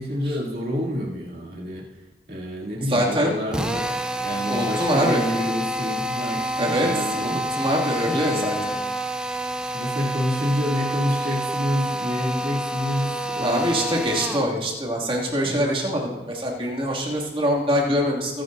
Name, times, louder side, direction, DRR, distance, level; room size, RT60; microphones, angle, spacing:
voice 1, 0.0-1.9 2.3-3.9 4.2-7.3 8.2-8.8 9.6-13.9 15.4-15.8, equal, 60° right, -4 dB, 2.8 m, -28 dB
voice 2, 2.9-3.4 4.5-5.2 6.6-8.6 13.4-18.4, equal, 30° right, -3 dB, 2.5 m, -24 dB
Drill, 3.5-14.5, equal, 5° right, 0.5 m, -28 dB
22.5 x 10.5 x 2.7 m, 1.3 s
head